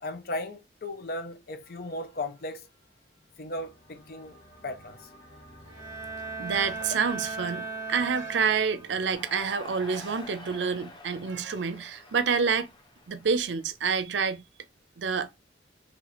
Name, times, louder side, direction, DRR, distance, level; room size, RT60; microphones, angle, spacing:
voice 1, 0.0-2.7 3.4-4.4 4.6-5.1, left 1 dB, 55° left, 0.8 m, -36 dB
sound 1, 1.6-9.1, equal, 75° left, 1.4 m, -53 dB
Bowed string instrument, 5.7-9.1, right 3 dB, 20° right, 0.8 m, -37 dB
voice 2, 6.4-12.7 13.1-14.4 15.0-15.3, right 6 dB, 85° right, 0.5 m, -28 dB
Crowd, 9.0-14.2, left 3 dB, 25° left, 0.6 m, -47 dB
3.2 x 3.0 x 4.0 m
head